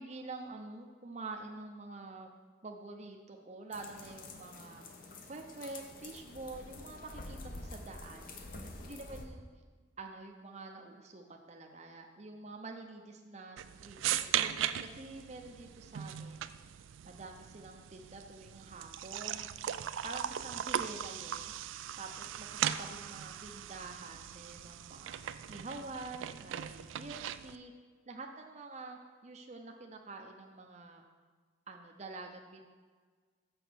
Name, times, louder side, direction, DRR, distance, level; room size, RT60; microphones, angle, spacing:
voice 1, 0.0-2.3 2.6-4.9 5.3-8.4 8.8-9.4 10.0-16.5 17.0-19.5 20.0-21.5 22.0-25.2 25.5-27.7 28.1-31.0 31.7-32.6, right 3 dB, 35° right, 3 dB, 0.6 m, -47 dB
sound 1, 3.7-9.3, left 2 dB, 45° left, 0.8 m, -48 dB
sound 2, 13.6-27.6, right 10 dB, 75° right, 0.3 m, -38 dB
6.8 x 6.0 x 6.2 m, 1.5 s
head